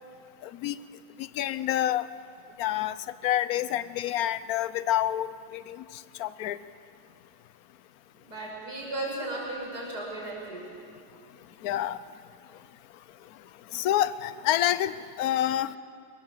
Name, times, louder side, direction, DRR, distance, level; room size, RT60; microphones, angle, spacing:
voice 1, 1.2-2.1 2.6-3.0 3.2-5.8 6.2-6.6 11.6-12.0 13.7-15.8, left 12 dB, 65° left, 15 dB, 1.1 m, -27 dB
voice 2, 8.2-10.6, right 2 dB, 60° right, -3 dB, 7.2 m, -35 dB
27.0 x 22.5 x 7.8 m, 2.5 s
omnidirectional pair, 1.9 m